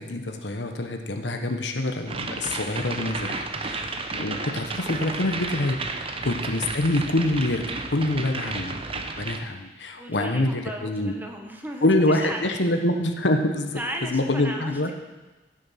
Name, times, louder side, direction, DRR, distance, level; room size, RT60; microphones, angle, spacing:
voice 1, 0.0-5.8 6.2-11.1 11.8-14.9, left 1 dB, 85° left, 5 dB, 1.2 m, -26 dB
sound 1, 2.1-9.4, right 3 dB, 35° right, 0.9 m, -32 dB
voice 2, 10.0-12.4 13.7-14.9, right 1 dB, 10° right, 2 dB, 1.3 m, -36 dB
15.0 x 6.6 x 5.8 m, 1.2 s
head